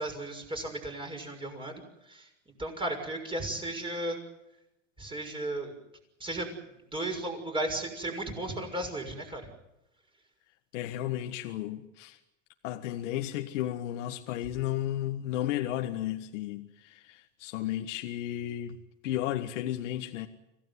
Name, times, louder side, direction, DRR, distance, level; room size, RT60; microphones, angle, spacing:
voice 1, 0.0-2.3 2.6-4.2 5.0-5.7 6.2-6.5 6.9-9.5, right 1 dB, 15° right, 6.4 m, -35 dB
voice 2, 10.7-12.2 12.6-18.8 19.0-20.3, left 13 dB, 80° left, 1.7 m, -33 dB
26.0 x 17.0 x 9.7 m
supercardioid pair, 135°, 37 cm